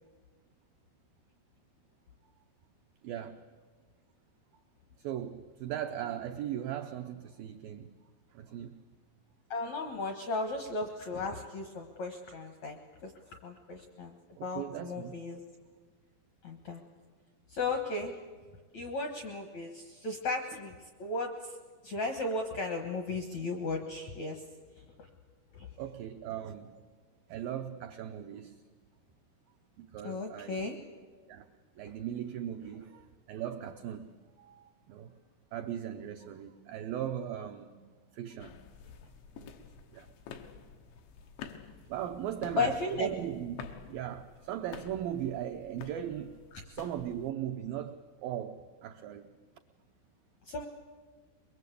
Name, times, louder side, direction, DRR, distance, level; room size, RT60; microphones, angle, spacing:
voice 1, 3.0-3.4 5.0-7.9 8.3-8.8 14.4-15.1 25.8-26.7 27.3-28.6 29.8-30.7 31.3-31.5 31.8-34.1 34.4-35.1 35.5-37.8 38.1-38.6 39.3-39.7 39.9-40.1 41.9-46.4 46.6-49.3, right 10 dB, 85° right, 2.0 m, -38 dB
voice 2, 9.5-12.8 13.0-14.2 14.4-15.4 16.4-16.8 17.5-18.1 18.7-20.7 21.0-21.6 21.8-24.4 25.5-25.7 30.0-30.8 42.5-43.1 50.5-50.6, left 3 dB, 70° left, 1.7 m, -35 dB
sound 1, 38.4-47.3, left 7 dB, 90° left, 3.6 m, -50 dB
23.0 x 22.5 x 8.4 m
omnidirectional pair, 5.2 m